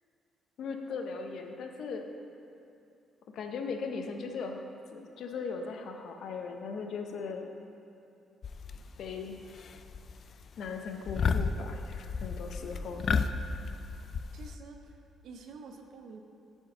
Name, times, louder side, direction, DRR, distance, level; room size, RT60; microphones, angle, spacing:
voice 1, 0.6-2.1 3.3-4.6 4.9-7.5 9.0-9.4 10.6-13.1, left 5 dB, 70° left, 4 dB, 0.7 m, -38 dB
sound 1, 8.4-9.1 9.5-10.1 10.4-10.7 11.1-14.6, left 5 dB, 50° left, 0.3 m, -32 dB
voice 2, 14.3-15.0 15.2-16.2, right 4 dB, 70° right, 4 dB, 0.5 m, -48 dB
7.6 x 4.5 x 5.7 m, 2.6 s
cardioid pair, 90°, 0 cm